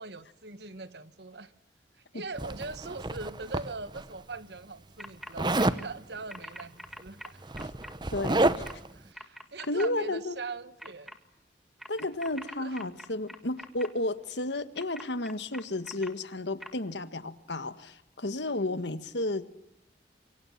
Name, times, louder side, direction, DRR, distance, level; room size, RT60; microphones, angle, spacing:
voice 1, 0.0-1.5 2.1-7.4 8.9-11.2 12.6-12.9, right 3 dB, 75° right, 1.4 m, -41 dB
Zipper (clothing), 2.4-4.0 5.4-5.8 7.0-7.1 7.4-8.9, right 2 dB, 25° right, 0.9 m, -29 dB
sound 1, 5.0-5.3 5.6-5.9 6.3-7.9 8.4-8.7 9.1-9.9 10.8-11.1 11.8-13.9 14.8-16.1 16.6-16.7, equal, ahead, 1.8 m, -43 dB
voice 2, 8.1-8.6 9.7-10.4 11.9-19.5, left 2 dB, 85° left, 1.7 m, -32 dB
28.0 x 23.5 x 7.4 m
head